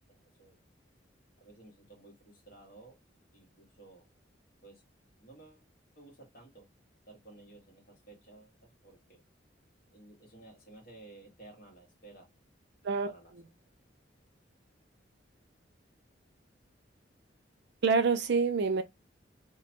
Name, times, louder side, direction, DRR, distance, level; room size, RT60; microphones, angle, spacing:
voice 1, 0.1-0.6 1.4-2.9 3.3-4.0 4.6-4.8 5.2-5.7 6.0-6.6 7.1-8.5 8.8-9.2 9.9-12.3 13.0-13.3, right 2 dB, 55° left, 1.6 m, -54 dB
voice 2, 17.8-18.8, right 4 dB, 65° right, 0.5 m, -26 dB
2.9 x 2.2 x 2.8 m
head